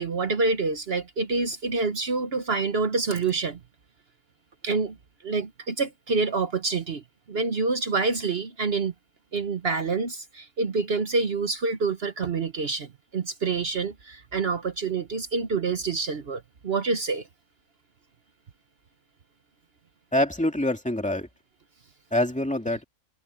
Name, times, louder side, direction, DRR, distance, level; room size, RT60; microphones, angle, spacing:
voice 1, 0.0-3.6 4.6-5.0 5.2-8.9 9.3-17.3, right 4 dB, 55° right, 1.3 m, -27 dB
voice 2, 20.1-21.3 22.1-22.8, left 1 dB, 5° left, 2.3 m, -25 dB
omnidirectional pair, 1.3 m